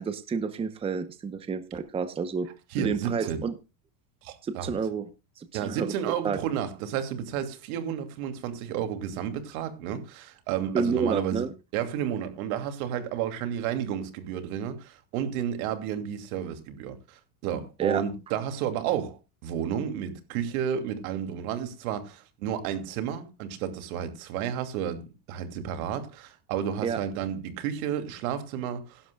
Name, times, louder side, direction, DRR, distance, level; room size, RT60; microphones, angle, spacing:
voice 1, 0.0-2.5 2.8-3.5 4.4-5.1 5.4-5.9 6.2-6.4 10.7-11.5 17.8-18.0 26.8-27.0, right 5 dB, 15° right, 0.8 m, -29 dB
voice 2, 2.7-3.4 4.2-4.8 5.5-29.0, right 9 dB, 75° right, 2.7 m, -32 dB
17.0 x 11.5 x 2.3 m
cardioid pair, 160°, 43 cm